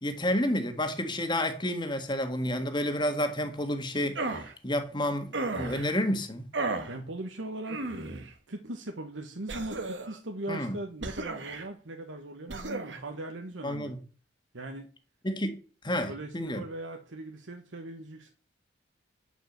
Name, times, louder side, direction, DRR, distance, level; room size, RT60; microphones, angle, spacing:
voice 1, 0.0-6.5 10.5-10.7 13.6-14.0 15.2-15.6 15.8-16.6, left 1 dB, 25° left, 1.7 m, -30 dB
sound 1, 4.1-4.5 5.3-5.9 6.5-6.9 7.7-8.3 9.5-10.2 11.0-11.7 12.5-13.0, right 3 dB, 75° right, 1.6 m, -34 dB
voice 2, 6.8-14.0 14.5-14.9 16.1-18.3, right 2 dB, 90° right, 1.4 m, -40 dB
11.5 x 5.2 x 8.0 m
head